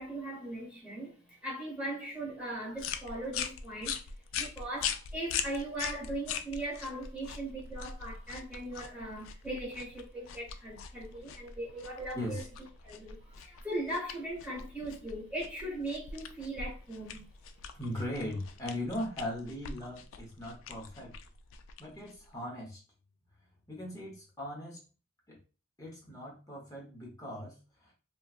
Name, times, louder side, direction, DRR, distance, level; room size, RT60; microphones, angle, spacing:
voice 1, 0.0-4.0 4.4-12.4 12.8-17.3, right 1 dB, 5° right, 1.0 m, -39 dB
sound 1, 2.8-22.3, left 7 dB, 70° left, 0.3 m, -42 dB
voice 2, 12.1-12.5 17.7-21.1 21.8-22.8 23.7-24.8 25.3-25.4 25.8-27.9, left 1 dB, 15° left, 0.9 m, -39 dB
2.8 x 2.3 x 2.4 m
head